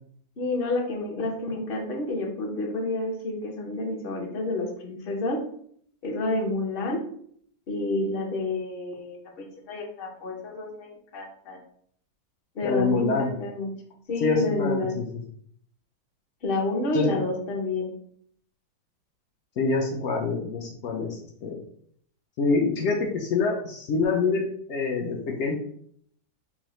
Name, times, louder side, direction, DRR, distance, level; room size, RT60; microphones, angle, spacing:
voice 1, 0.4-5.4 6.0-7.0 7.7-11.6 12.5-13.7 14.1-14.9 16.4-17.9, left 2 dB, 50° left, 0 dB, 0.7 m, -29 dB
voice 2, 12.6-13.3 14.2-15.0 16.9-17.1 19.6-21.6 22.4-24.4 24.7-25.5, left 4 dB, 85° left, 0 dB, 0.6 m, -26 dB
5.5 x 2.1 x 3.0 m, 0.63 s
omnidirectional pair, 1.8 m